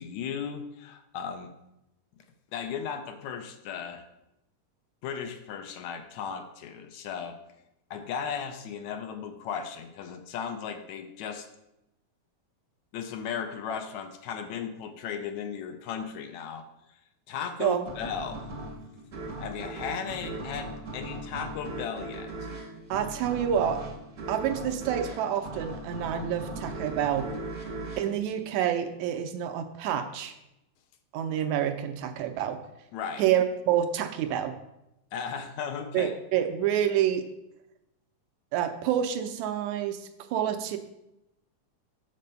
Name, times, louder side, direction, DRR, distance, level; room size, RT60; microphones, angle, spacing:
voice 1, 0.0-1.5 2.5-4.0 5.0-7.4 7.9-11.5 12.9-16.7 17.3-18.5 19.4-22.5 32.9-33.2 35.1-36.2, left 7 dB, 80° left, 7 dB, 1.9 m, -36 dB
sound 1, 17.9-29.1, right 2 dB, 50° right, 0.9 m, -39 dB
voice 2, 22.9-23.8 24.3-27.3 28.0-30.4 31.1-32.6 33.2-34.5 35.9-37.3 38.5-40.8, right 10 dB, 80° right, 7 dB, 1.8 m, -28 dB
7.4 x 4.3 x 6.7 m, 0.89 s
omnidirectional pair, 3.5 m